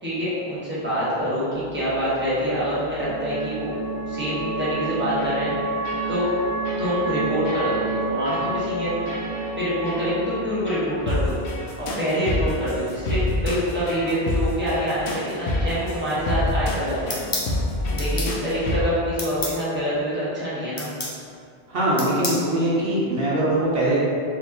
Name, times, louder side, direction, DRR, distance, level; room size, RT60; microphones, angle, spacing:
voice 1, 0.0-3.7 4.1-5.5 6.1-6.2 6.8-9.0 9.6-11.3 11.8-17.1 18.0-20.9, equal, 10° right, -11 dB, 1.1 m, -26 dB
sound 1, 1.6-11.9, right 2 dB, 5° left, 0.8 m, -30 dB
sound 2, 5.2-5.5 5.8-6.4 6.7-7.1 7.5-8.0 8.3-8.5 9.1-9.6 9.9-10.1 10.7-18.8, left 1 dB, 85° left, 0.9 m, -28 dB
sound 3, 17.1-17.5 18.0-18.3 19.2-19.6 20.8-21.2 22.0-22.4, left 2 dB, 30° left, 0.4 m, -29 dB
voice 2, 21.7-24.0, right 1 dB, 65° right, -8 dB, 1.0 m, -22 dB
4.4 x 2.7 x 2.9 m, 2.3 s
omnidirectional pair, 1.1 m